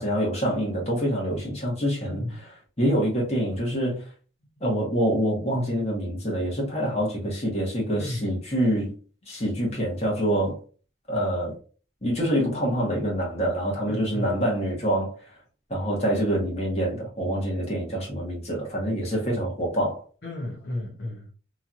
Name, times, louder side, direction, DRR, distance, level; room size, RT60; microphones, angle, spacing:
voice 1, 0.0-2.2 2.8-4.0 4.6-8.9 9.3-10.6 11.1-11.5 12.0-15.2 15.7-20.0, equal, 30° left, 1.3 m, -26 dB
voice 2, 2.1-2.4 8.0-8.3 13.9-14.4 20.2-21.3, left 1 dB, 55° left, 0.7 m, -33 dB
3.1 x 2.7 x 2.5 m
head